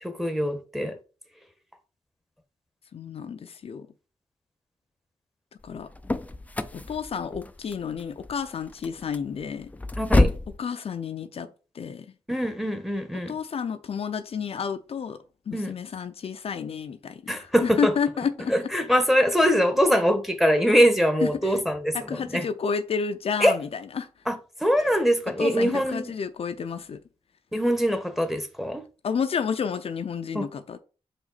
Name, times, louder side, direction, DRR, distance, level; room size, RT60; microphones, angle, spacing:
voice 1, 0.0-1.0 10.0-10.3 12.3-13.3 15.5-15.7 17.3-17.9 18.5-22.4 23.4-23.6 24.3-26.1 27.5-28.8 30.3-30.4, equal, ahead, 1.2 m, -23 dB
voice 2, 2.9-3.9 5.6-5.9 6.7-9.7 10.6-11.5 11.7-12.1 13.3-15.2 15.5-18.5 21.2-21.6 21.9-24.1 25.4-27.0 29.0-30.8, left 6 dB, 65° left, 0.6 m, -30 dB
sound 1, 5.6-10.6, left 2 dB, 15° left, 0.5 m, -27 dB
6.1 x 5.0 x 4.1 m
wide cardioid pair, 105°, 11 cm